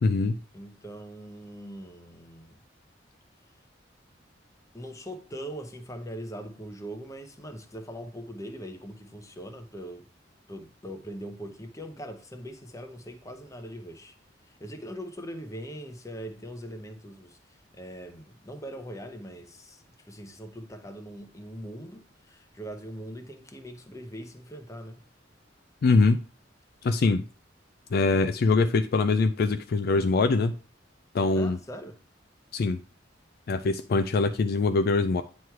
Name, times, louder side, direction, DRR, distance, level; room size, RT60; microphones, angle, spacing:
voice 1, 0.0-0.4 25.8-26.2 26.8-27.2 27.9-30.5 31.1-31.6 32.5-32.8 33.5-35.2, left 3 dB, 55° left, 0.4 m, -23 dB
voice 2, 0.5-2.6 4.7-10.0 10.5-14.1 14.5-25.0 31.3-32.0, equal, 15° left, 0.8 m, -41 dB
9.4 x 3.1 x 4.6 m
head